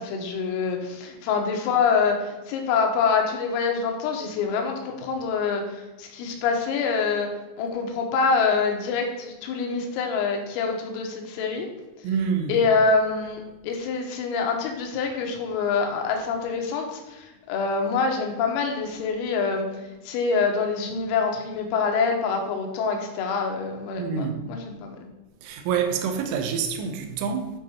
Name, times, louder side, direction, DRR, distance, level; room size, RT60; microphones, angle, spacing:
voice 1, 0.0-7.3 7.6-11.7 12.5-25.0, left 5 dB, 85° left, 3.8 m, -25 dB
voice 2, 12.0-12.6 24.0-24.4 25.4-27.5, right 6 dB, 75° right, 3.2 m, -27 dB
10.5 x 4.6 x 4.3 m
omnidirectional pair, 5.9 m